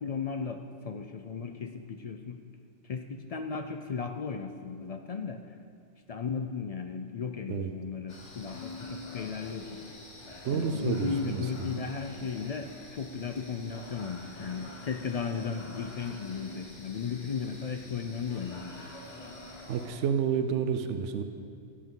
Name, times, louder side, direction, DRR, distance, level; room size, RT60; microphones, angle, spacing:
voice 1, 0.0-2.4 2.8-5.6 6.1-9.8 10.4-18.7, left 5 dB, 65° left, 6 dB, 0.3 m, -35 dB
sound 1, 8.1-19.9, left 2 dB, 80° left, 1.9 m, -46 dB
voice 2, 10.4-11.4 11.7-11.8 19.7-21.2, right 7 dB, 90° right, 8 dB, 0.9 m, -29 dB
16.0 x 8.4 x 3.8 m, 2.3 s
omnidirectional pair, 1.2 m